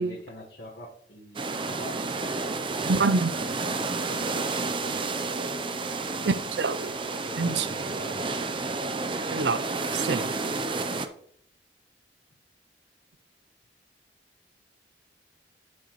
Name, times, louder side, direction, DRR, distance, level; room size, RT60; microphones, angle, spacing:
voice 1, 0.0-6.3 7.2-8.6, left 1 dB, 60° left, 1.4 m, -46 dB
sound 1, 1.3-11.1, right 3 dB, 30° right, 0.6 m, -31 dB
voice 2, 2.9-3.4 6.2-6.9 7.4-7.7 9.3-9.6 9.9-10.3, right 4 dB, 70° right, 0.6 m, -26 dB
11.0 x 6.4 x 3.1 m
head